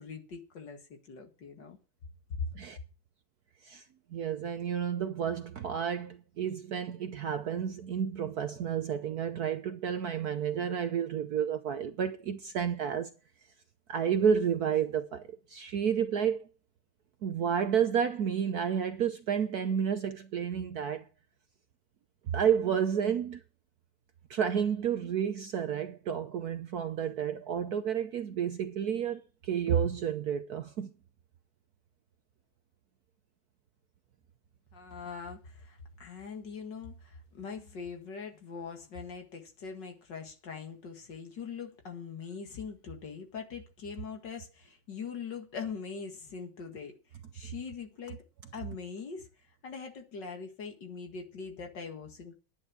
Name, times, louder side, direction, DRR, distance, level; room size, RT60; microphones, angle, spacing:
voice 1, 0.0-1.8 2.3-2.5 34.7-47.0 47.3-48.2 48.5-49.3 49.6-52.4, left 5 dB, 60° left, 2.4 m, -42 dB
voice 2, 4.1-13.1 13.9-15.2 15.5-16.5 17.2-21.0 22.3-23.4 24.3-30.9, right 8 dB, 60° right, 1.1 m, -30 dB
11.0 x 9.4 x 6.1 m
omnidirectional pair, 2.3 m